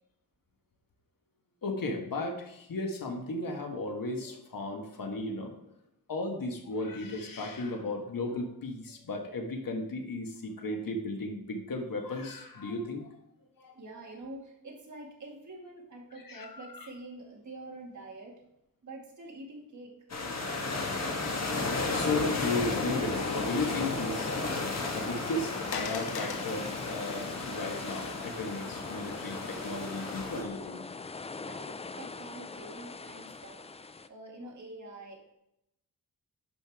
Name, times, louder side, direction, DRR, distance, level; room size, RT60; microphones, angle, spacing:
voice 1, 1.6-5.6 6.1-13.1 13.6-13.7 16.2-16.9 21.9-30.8 34.4-34.5, left 2 dB, 60° left, 3 dB, 1.6 m, -35 dB
voice 2, 13.7-18.4 18.8-19.9 31.5-35.3, right 2 dB, 50° right, -1 dB, 2.3 m, -46 dB
sound 1, 20.1-30.4, left 3 dB, 45° left, 1.5 m, -34 dB
sound 2, 23.1-34.1, left 4 dB, 20° left, 0.4 m, -42 dB
Water, 23.5-28.9, left 6 dB, 80° left, 0.9 m, -44 dB
11.0 x 5.2 x 3.7 m, 0.84 s
wide cardioid pair, 110°, 37 cm